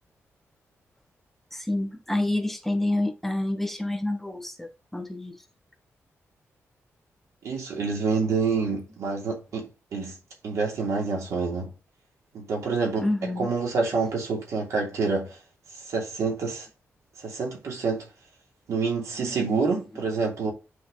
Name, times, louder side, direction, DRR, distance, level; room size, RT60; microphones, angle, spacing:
voice 1, 1.5-5.3 13.0-13.5 19.2-19.4, left 1 dB, 5° left, 0.7 m, -28 dB
voice 2, 7.4-10.2 10.4-11.7 12.3-13.1 13.4-15.4 15.8-16.7 17.2-18.1 18.7-20.5, right 4 dB, 85° right, 3.0 m, -27 dB
8.4 x 4.9 x 2.8 m
wide cardioid pair, 160°, 5 cm